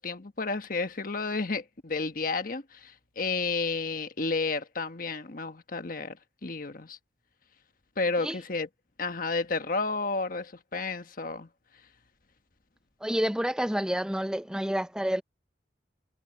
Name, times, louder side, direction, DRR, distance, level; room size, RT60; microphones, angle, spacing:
voice 1, 0.0-6.2 6.4-7.0 8.0-8.7 9.0-11.5, left 3 dB, 50° left, 1.3 m, -31 dB
voice 2, 13.0-15.2, equal, 5° right, 0.6 m, -29 dB
head